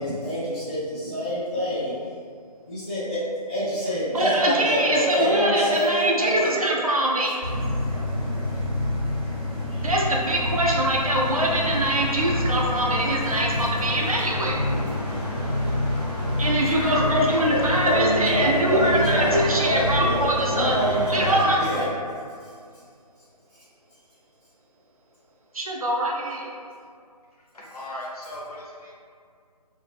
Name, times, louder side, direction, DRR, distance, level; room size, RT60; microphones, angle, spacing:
voice 1, 0.0-2.2 2.7-3.2 3.5-6.6 8.3-8.4 9.7-9.9 17.5-20.2 20.5-21.9 22.4-22.5, equal, 10° left, -14 dB, 0.6 m, -26 dB
voice 2, 4.1-7.4 9.8-14.6 16.4-20.7 21.1-21.6 25.5-26.5, right 1 dB, 60° right, -2 dB, 0.4 m, -23 dB
sound 1, 7.4-21.2, left 1 dB, 15° right, 0.8 m, -28 dB
sound 2, 11.2-21.6, left 1 dB, 85° left, 1.0 m, -35 dB
voice 3, 16.7-17.8 18.1-18.5 21.3-22.0 27.3-28.9, left 1 dB, 65° left, -4 dB, 0.7 m, -36 dB
2.4 x 2.0 x 2.5 m, 2.1 s
figure-of-eight pair, 150°, 21 cm